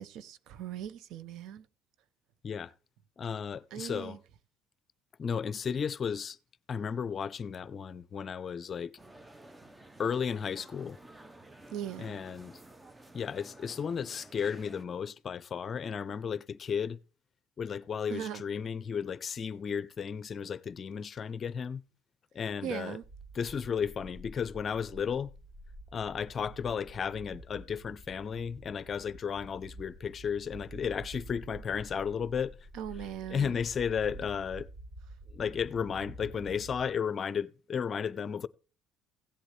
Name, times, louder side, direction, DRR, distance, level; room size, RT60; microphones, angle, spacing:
voice 1, 0.0-1.6 3.7-4.2 11.7-12.2 18.1-18.4 22.6-23.0 32.7-33.5, right 9 dB, 70° right, 0.7 m, -39 dB
voice 2, 3.2-4.2 5.2-6.4 6.7-9.0 10.0-11.0 12.0-12.6 13.1-17.0 17.6-21.8 22.3-23.0 23.3-25.3 25.9-32.6 33.3-34.7 35.3-38.5, left 7 dB, 40° left, 0.6 m, -34 dB
sound 1, 9.0-14.8, right 2 dB, 15° right, 0.8 m, -53 dB
sound 2, 23.0-36.9, right 1 dB, 55° right, 7.9 m, -49 dB
16.5 x 8.1 x 3.3 m
supercardioid pair, 95°, 0 cm